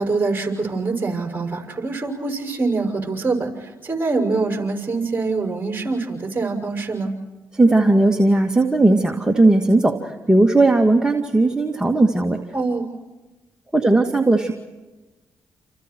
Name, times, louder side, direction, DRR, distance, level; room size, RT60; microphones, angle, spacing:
voice 1, 0.0-7.1 12.5-12.9, right 3 dB, 30° right, 3 dB, 6.6 m, -24 dB
voice 2, 7.6-10.0 10.3-12.4 13.7-14.5, right 2 dB, 10° right, 2 dB, 2.2 m, -17 dB
29.0 x 28.5 x 4.7 m, 1.1 s
cardioid pair, 70°, 7 cm